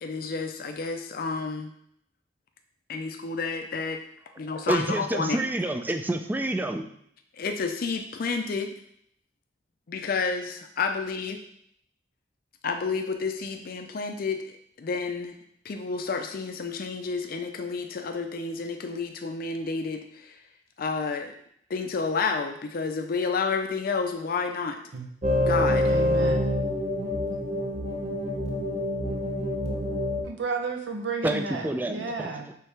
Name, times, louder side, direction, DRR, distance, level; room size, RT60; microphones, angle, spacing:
voice 1, 0.0-1.7 2.9-4.0 4.4-5.4 7.3-8.7 9.9-11.4 12.6-14.4 14.8-15.4 15.6-20.4 20.8-21.3 21.7-24.8 25.4-25.9, left 4 dB, 55° left, 5 dB, 0.4 m, -30 dB
voice 2, 4.7-6.9 31.2-32.5, right 1 dB, 10° right, 6 dB, 0.3 m, -28 dB
sound 1, 25.2-30.2, left 1 dB, 40° right, 0.8 m, -26 dB
voice 3, 25.9-26.5 30.2-32.5, right 4 dB, 85° right, 3 dB, 0.6 m, -32 dB
4.6 x 3.3 x 3.3 m, 0.68 s
head